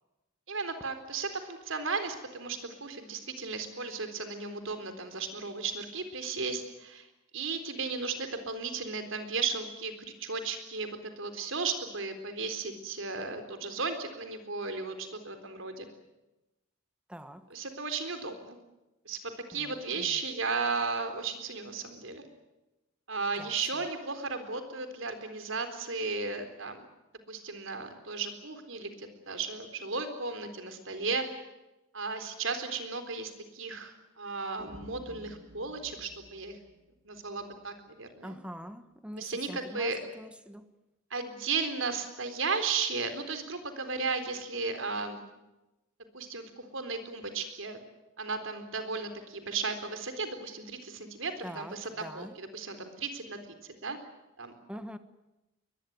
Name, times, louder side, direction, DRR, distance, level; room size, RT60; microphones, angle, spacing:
voice 1, 0.5-7.1 7.3-9.9 10.2-15.9 17.5-18.6 19.1-22.2 23.1-26.8 27.3-31.3 31.9-36.6 37.0-38.4 39.2-40.0 41.1-45.2 46.1-47.8 48.2-54.0 54.4-54.5, right 4 dB, 70° right, 3.9 m, -35 dB
voice 2, 17.1-17.4 19.6-20.1 23.4-23.5 38.2-40.7 51.4-52.4 54.7-55.0, equal, 5° right, 1.3 m, -44 dB
sound 1, 34.6-37.7, right 1 dB, 90° right, 3.5 m, -51 dB
22.5 x 21.5 x 9.4 m
head